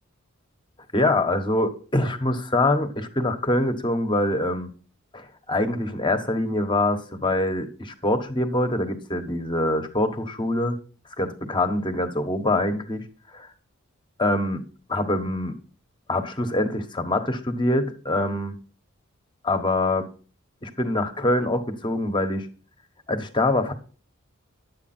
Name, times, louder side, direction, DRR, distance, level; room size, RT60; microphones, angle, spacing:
voice 1, 0.9-4.7 5.1-10.8 11.2-13.0 13.3-13.5 14.2-14.6 14.9-15.6 16.1-18.5 19.4-20.1 20.6-22.5 23.1-23.7, left 1 dB, 20° left, 9 dB, 1.4 m, -24 dB
11.5 x 8.5 x 4.4 m, 0.38 s
head